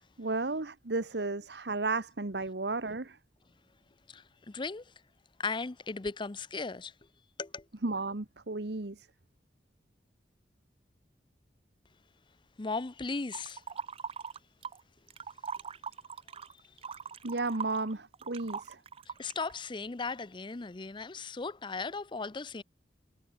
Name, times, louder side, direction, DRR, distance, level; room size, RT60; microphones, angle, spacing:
voice 1, 0.2-3.2 7.8-9.1 17.2-18.8, right 3 dB, 65° right, 1.2 m, -33 dB
voice 2, 4.1-4.8 5.4-6.9 7.4-7.6 12.6-13.6 19.2-22.6, left 4 dB, 25° left, 0.6 m, -37 dB
sound 1, 13.3-14.8 15.1-19.5, right 6 dB, 35° right, 0.5 m, -41 dB
head